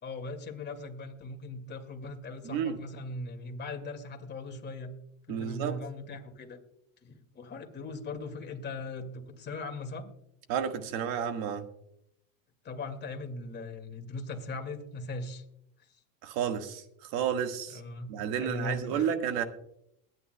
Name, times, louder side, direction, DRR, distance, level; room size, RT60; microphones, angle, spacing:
voice 1, 0.0-4.9 5.3-6.6 7.0-10.1 12.6-15.4 15.8-15.9 17.7-18.1 18.4-19.1, left 2 dB, 25° left, 4 dB, 2.0 m, -39 dB
voice 2, 2.4-2.8 5.3-5.8 10.5-11.6 16.2-17.8 18.1-19.4, right 8 dB, 60° right, 7 dB, 1.6 m, -31 dB
22.0 x 9.7 x 2.2 m, 0.75 s
supercardioid pair, 120°, 39 cm